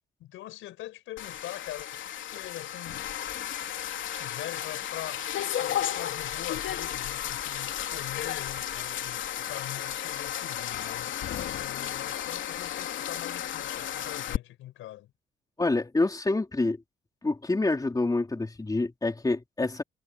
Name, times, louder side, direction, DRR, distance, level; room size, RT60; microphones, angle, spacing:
voice 1, 0.2-3.0 4.1-5.3 5.6-11.2 11.5-15.1, left 14 dB, 90° left, 5.3 m, -43 dB
sound 1, 1.2-14.4, left 11 dB, 75° left, 3.2 m, -33 dB
voice 2, 15.6-16.8 17.2-19.8, left 2 dB, 20° left, 3.3 m, -27 dB
cardioid pair, 90°, 20 cm